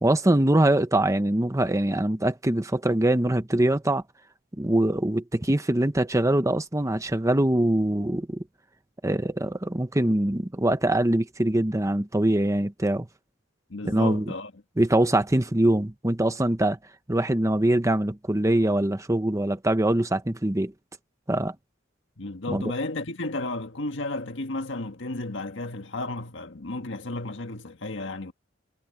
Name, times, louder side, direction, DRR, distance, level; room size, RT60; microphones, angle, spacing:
voice 1, 0.0-4.0 4.6-8.4 9.0-13.1 13.8-14.3 14.8-16.8 17.1-20.7 21.3-21.5 22.5-22.7, right 1 dB, 15° right, 0.9 m, -23 dB
voice 2, 13.7-14.5 22.2-28.3, left 2 dB, 65° left, 1.7 m, -33 dB
head